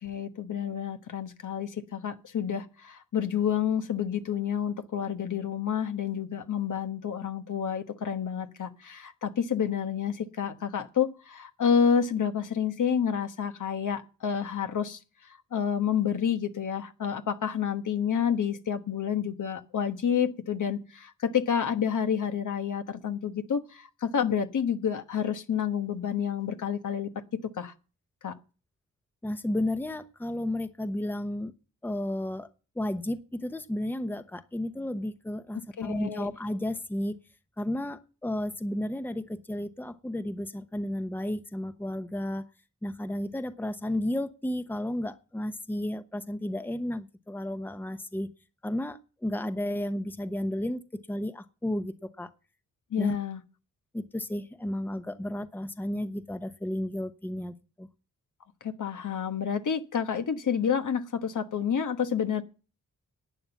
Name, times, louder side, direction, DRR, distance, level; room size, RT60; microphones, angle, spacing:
voice 1, 0.0-15.0 15.5-27.7 28.2-28.3 35.8-36.3 52.9-53.4 58.6-62.4, left 7 dB, 65° left, 1.3 m, -29 dB
voice 2, 29.2-31.5 31.8-32.5 32.8-37.1 37.6-42.4 42.8-48.3 48.6-52.3 53.0-53.2 53.9-57.9, left 1 dB, 5° left, 0.9 m, -33 dB
11.5 x 8.8 x 7.2 m
cardioid pair, 75°, 33 cm